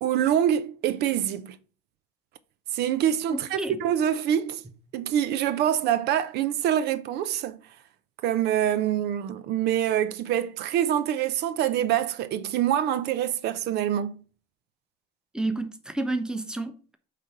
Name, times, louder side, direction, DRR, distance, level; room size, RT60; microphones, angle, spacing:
voice 1, 0.0-1.6 2.7-4.6 4.9-7.6 8.2-14.1, right 10 dB, 75° right, 0.6 m, -25 dB
voice 2, 3.3-3.8 15.3-17.0, right 2 dB, 5° right, 1.0 m, -30 dB
8.4 x 3.3 x 5.8 m
cardioid pair, 110°, 17 cm